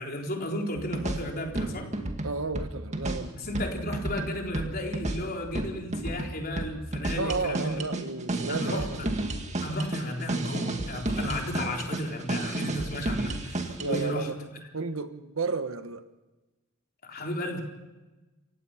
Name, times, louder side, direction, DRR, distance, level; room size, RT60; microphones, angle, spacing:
voice 1, 0.0-1.9 3.4-7.8 8.5-9.1 9.6-14.3 17.0-17.6, left 1 dB, 45° left, 3.9 m, -33 dB
sound 1, 0.8-14.1, right 2 dB, 35° right, 2.0 m, -32 dB
voice 2, 2.2-3.4 7.2-9.1 13.8-16.1, right 4 dB, 65° right, 1.3 m, -33 dB
28.0 x 16.5 x 5.8 m
head